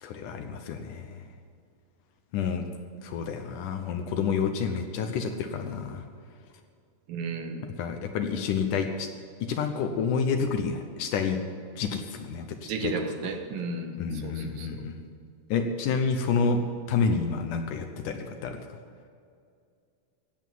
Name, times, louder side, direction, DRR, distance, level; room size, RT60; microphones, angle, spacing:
voice 1, 0.0-1.2 2.3-2.6 3.0-6.0 7.8-9.1 9.5-11.4 11.8-12.9 14.0-15.0 15.5-16.6 16.9-18.6, left 5 dB, 70° left, 6 dB, 2.2 m, -29 dB
voice 2, 7.1-7.7 12.6-14.7, right 4 dB, 75° right, 6 dB, 2.8 m, -34 dB
16.0 x 8.1 x 9.3 m, 2.3 s
omnidirectional pair, 4.2 m